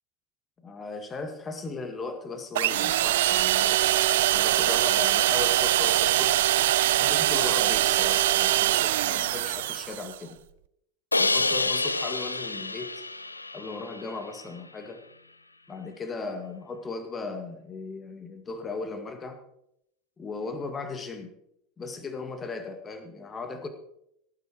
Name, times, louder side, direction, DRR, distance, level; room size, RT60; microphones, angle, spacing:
voice 1, 0.6-3.8 4.3-6.4 6.9-10.4 11.2-12.9 13.5-15.0 15.7-19.4 20.2-21.3 21.8-23.7, left 3 dB, 25° left, 7 dB, 2.2 m, -37 dB
sound 1, 2.6-10.2, right 14 dB, 65° right, 0.5 m, -23 dB
Crash cymbal, 11.1-14.2, left 2 dB, 85° left, 0.5 m, -28 dB
17.5 x 9.8 x 4.6 m, 0.76 s
figure-of-eight pair, 75°, 0 cm